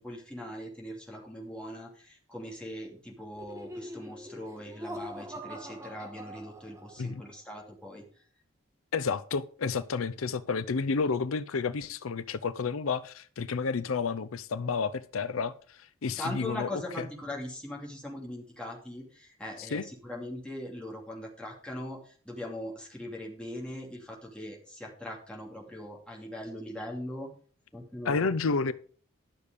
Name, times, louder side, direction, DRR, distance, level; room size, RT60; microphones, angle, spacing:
voice 1, 0.0-8.2 16.0-27.3 27.7-28.3 28.6-28.7, left 1 dB, 5° left, 2.7 m, -41 dB
Laughter, 3.3-7.1, equal, 15° right, 1.6 m, -43 dB
voice 2, 8.9-16.7 17.0-17.1 19.7-19.8 28.0-28.7, left 4 dB, 80° left, 0.5 m, -30 dB
12.0 x 6.8 x 5.0 m
head